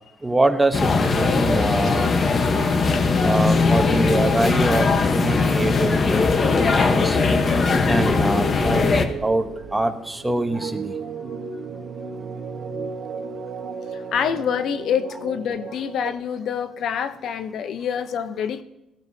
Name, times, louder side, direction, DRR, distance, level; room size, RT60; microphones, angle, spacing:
voice 1, 0.2-2.1 3.2-7.2 7.9-11.0, right 2 dB, 10° right, 7 dB, 1.0 m, -24 dB
sound 1, 0.7-9.1, left 4 dB, 35° left, 1.1 m, -19 dB
sound 2, 6.4-16.1, right 5 dB, 60° right, 1.2 m, -35 dB
voice 2, 13.9-18.6, left 8 dB, 60° left, 11 dB, 0.7 m, -26 dB
19.0 x 15.0 x 2.8 m, 0.89 s
cardioid pair, 125°, 0 cm